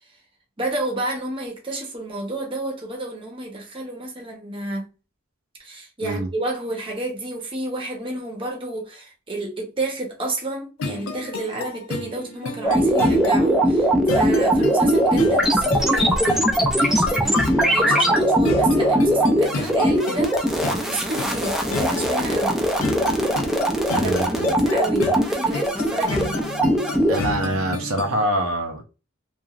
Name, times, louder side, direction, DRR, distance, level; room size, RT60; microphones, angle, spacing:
voice 1, 0.6-4.9 5.6-17.4 17.7-22.6 24.0-24.1 24.5-26.4, right 2 dB, 25° right, 0.8 m, -31 dB
sound 1, 10.8-28.2, left 3 dB, 70° left, 0.5 m, -32 dB
sound 2, 12.6-27.2, right 1 dB, ahead, 0.4 m, -20 dB
voice 2, 23.9-24.5 27.1-28.8, right 1 dB, 75° right, 0.6 m, -25 dB
3.0 x 2.4 x 2.3 m
head